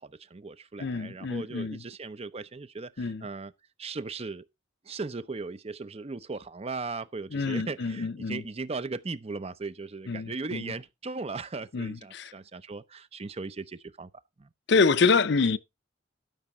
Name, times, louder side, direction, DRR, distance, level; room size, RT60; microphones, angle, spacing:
voice 1, 0.0-3.5 3.8-4.5 4.8-14.1 14.4-14.5, right 3 dB, 35° right, 0.6 m, -38 dB
voice 2, 0.8-1.8 3.0-3.2 7.3-8.4 10.1-10.7 11.7-12.3 14.7-15.6, left 4 dB, 65° left, 0.6 m, -26 dB
12.5 x 5.3 x 4.5 m
head